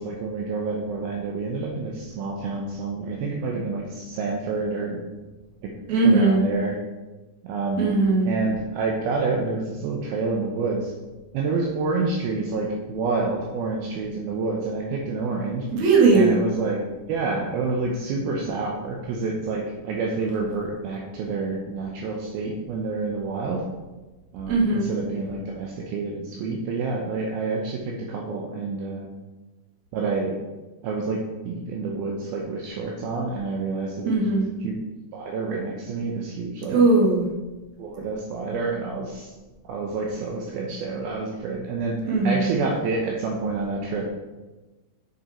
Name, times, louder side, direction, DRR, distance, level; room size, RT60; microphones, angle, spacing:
voice 1, 0.0-5.0 5.6-5.7 6.0-6.8 7.4-7.9 8.2-10.9 11.3-15.7 16.1-16.8 17.1-23.6 24.3-29.1 29.9-30.4 30.8-34.2 34.6-34.7 35.1-36.8 37.8-39.3 39.6-44.1, right 3 dB, 75° right, -1 dB, 2.6 m, -28 dB
voice 2, 5.9-6.4 7.8-8.3 15.7-16.4 24.5-24.9 34.1-34.4 36.7-37.3 42.1-42.5, right 3 dB, 50° right, -3 dB, 2.7 m, -18 dB
7.5 x 6.6 x 4.4 m, 1.1 s
omnidirectional pair, 4.6 m